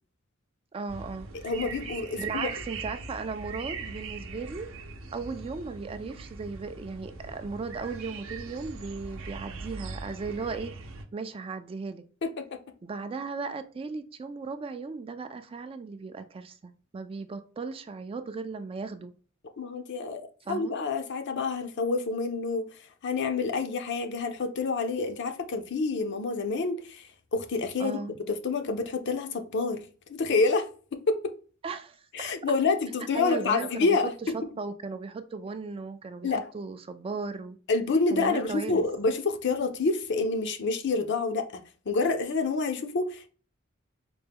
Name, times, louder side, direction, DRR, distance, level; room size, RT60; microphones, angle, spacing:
voice 1, 0.7-1.3 2.2-4.7 5.1-10.7 11.1-12.1 12.8-19.1 20.4-20.8 27.8-28.1 31.6-32.3 33.1-37.6 38.1-38.8, right 4 dB, 25° right, 0.3 m, -36 dB
sound 1, 0.9-11.0, right 4 dB, 70° right, 0.6 m, -40 dB
voice 2, 1.4-2.5 12.2-12.5 19.6-22.6 23.0-27.0 27.3-28.0 28.3-29.8 30.1-30.7 31.1-31.3 32.1-34.1 36.2-36.4 37.7-43.3, left 4 dB, 60° left, 0.6 m, -28 dB
4.2 x 2.2 x 3.4 m
head